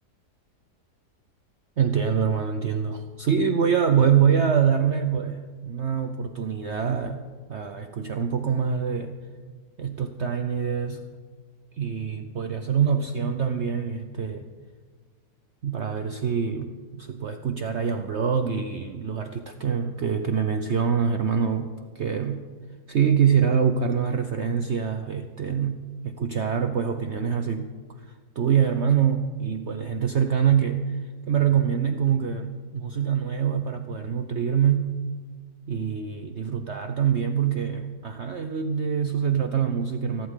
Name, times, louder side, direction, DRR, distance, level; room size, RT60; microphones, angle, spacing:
voice 1, 1.8-7.2 7.5-9.2 9.8-11.1 11.8-14.5 15.6-22.5 22.9-27.7 28.0-28.1 28.4-31.0 31.3-35.0 35.7-40.3, right 7 dB, 55° right, 7 dB, 0.8 m, -25 dB
25.5 x 12.0 x 3.7 m, 1.5 s
omnidirectional pair, 1.8 m